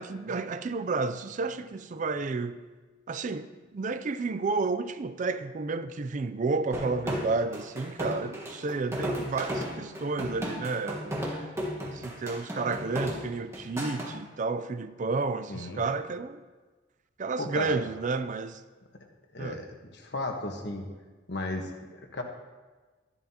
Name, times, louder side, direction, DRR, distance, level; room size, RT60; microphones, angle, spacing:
voice 1, 0.0-2.6 3.1-11.5 11.9-16.4 17.2-18.6 19.4-19.6, right 3 dB, 40° right, 0.4 m, -31 dB
sound 1, 6.7-14.1, equal, 15° right, 1.4 m, -34 dB
voice 2, 15.5-15.8 17.4-17.8 19.3-19.6 19.9-20.9 21.3-22.2, left 2 dB, 60° left, 1.3 m, -34 dB
12.5 x 11.0 x 2.9 m
head